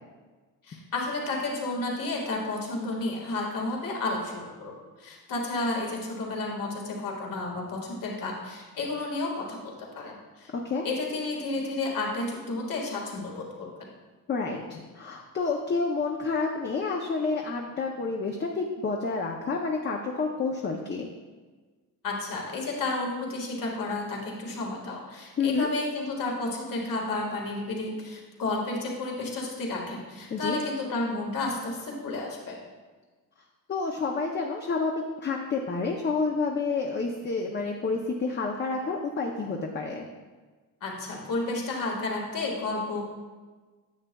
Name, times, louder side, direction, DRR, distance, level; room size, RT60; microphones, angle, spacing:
voice 1, 0.6-10.5 10.8-13.9 22.0-32.6 40.8-43.0, left 2 dB, 65° left, -1 dB, 1.7 m, -32 dB
voice 2, 14.3-21.1 25.4-25.7 30.3-30.6 33.7-34.9 35.2-40.1, left 4 dB, 30° left, 1 dB, 0.5 m, -29 dB
9.7 x 8.0 x 2.2 m, 1.4 s
wide cardioid pair, 175°, 36 cm